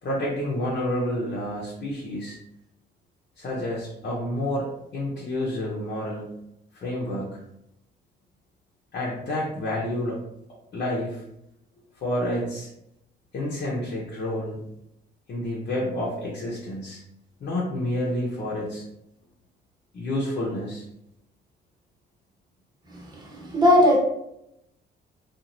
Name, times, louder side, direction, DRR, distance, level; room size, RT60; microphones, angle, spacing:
voice 1, 0.0-2.4 3.4-6.4 6.7-7.4 8.9-10.2 10.7-11.2 12.0-12.7 13.3-14.6 15.3-17.0 17.4-18.8 19.9-20.8, left 1 dB, 55° left, -4 dB, 0.8 m, -29 dB
voice 2, 23.2-24.0, left 1 dB, 20° right, -3 dB, 0.9 m, -18 dB
2.9 x 2.5 x 2.5 m, 0.81 s
cardioid pair, 90°, 20 cm